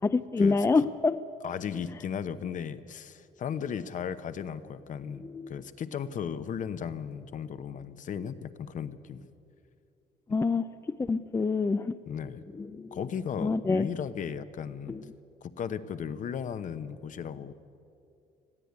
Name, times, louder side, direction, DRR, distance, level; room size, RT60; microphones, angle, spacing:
voice 1, 0.0-1.2 5.2-5.5 10.3-10.7 11.0-12.0 12.5-13.0 13.4-13.9 14.9-15.0, left 4 dB, 15° left, 12 dB, 0.4 m, -27 dB
voice 2, 1.4-9.2 12.1-12.4 12.9-15.0 15.4-17.5, left 7 dB, 50° left, 12 dB, 1.0 m, -36 dB
21.0 x 14.5 x 9.7 m, 2.6 s
cardioid pair, 110°, 17 cm